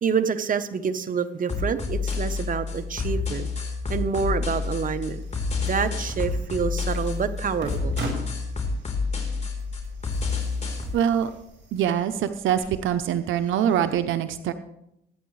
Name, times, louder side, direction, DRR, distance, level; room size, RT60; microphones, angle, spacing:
voice 1, 0.0-3.5 3.9-5.2 5.6-8.0, right 6 dB, 45° right, 10 dB, 1.0 m, -27 dB
sound 1, 1.5-10.9, left 4 dB, 35° left, 3.9 m, -29 dB
sound 2, 4.8-14.0, right 2 dB, 65° right, 5.6 m, -42 dB
voice 2, 10.9-11.3 11.7-14.5, right 9 dB, 80° right, 10 dB, 0.7 m, -24 dB
21.0 x 9.3 x 3.3 m, 0.81 s
cardioid pair, 90°, 20 cm